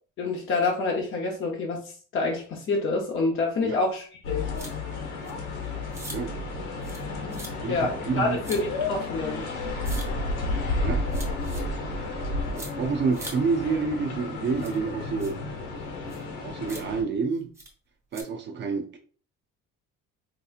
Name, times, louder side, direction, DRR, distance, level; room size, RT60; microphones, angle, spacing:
voice 1, 0.2-4.5 7.7-9.5, left 3 dB, 40° left, -1 dB, 0.7 m, -27 dB
sound 1, 4.2-17.0, left 2 dB, 90° left, 1.4 m, -32 dB
sound 2, 4.6-4.7 5.3-5.4 5.9-6.2 6.8-7.1 7.3-7.5 8.4-8.6 9.8-10.1 11.1-11.6 12.6-12.7 13.1-13.3 14.6-14.8 15.2-15.3 16.1-16.2 16.7-16.8 17.6-17.7 18.1-18.2, right 2 dB, 10° right, 0.8 m, -41 dB
voice 2, 7.6-8.4 10.8-11.0 12.5-15.4 16.4-17.5 18.1-19.0, right 5 dB, 35° right, 4 dB, 0.5 m, -28 dB
4.4 x 2.8 x 2.4 m, 0.41 s
cardioid pair, 170°, 31 cm